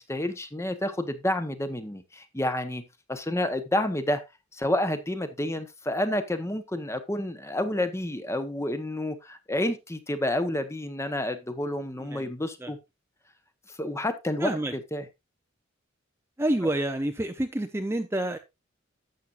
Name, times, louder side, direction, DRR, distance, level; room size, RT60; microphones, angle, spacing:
voice 1, 0.0-4.2 4.5-12.8 13.8-14.5 14.9-15.0, left 1 dB, 15° left, 1.0 m, -29 dB
voice 2, 12.0-12.3 12.6-12.7 14.4-14.7 16.4-18.4, right 1 dB, 15° right, 0.6 m, -28 dB
12.0 x 7.4 x 2.5 m
head